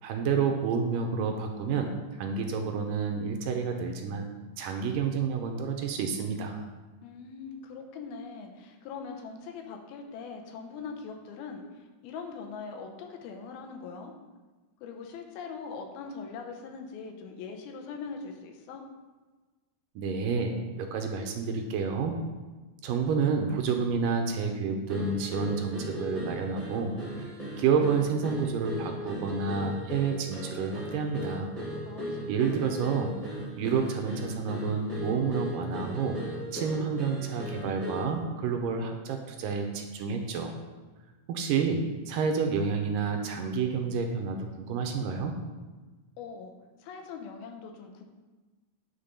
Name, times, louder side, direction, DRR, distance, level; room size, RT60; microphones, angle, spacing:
voice 1, 0.0-4.3 4.6-6.6 20.0-22.1 22.8-26.9 27.2-27.3 27.6-31.5 32.3-33.1 33.6-36.2 36.5-40.5 41.3-45.3, right 5 dB, 75° right, 4 dB, 2.2 m, -29 dB
voice 2, 7.0-11.6 12.0-14.1 14.8-18.8 31.9-32.6 46.2-46.5 46.8-48.0, left 5 dB, 85° left, 3 dB, 2.8 m, -41 dB
sound 1, 24.9-38.2, equal, 15° right, 1.3 m, -37 dB
10.5 x 4.5 x 5.3 m, 1.3 s
omnidirectional pair, 4.2 m